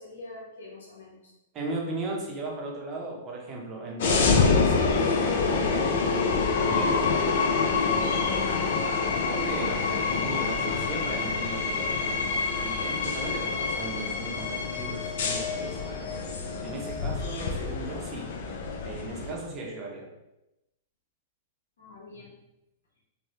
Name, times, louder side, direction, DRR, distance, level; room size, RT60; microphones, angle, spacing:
voice 1, 0.0-1.3 21.8-22.4, left 3 dB, 85° left, -2 dB, 1.0 m, -45 dB
voice 2, 1.5-7.3 9.3-12.2 12.6-16.3 16.6-18.3 18.8-20.1, right 2 dB, 30° right, -1 dB, 0.7 m, -37 dB
sound 1, 4.0-19.3, left 4 dB, 65° left, 0.5 m, -26 dB
3.2 x 2.2 x 2.8 m, 0.92 s
hypercardioid pair, 120°, 0 cm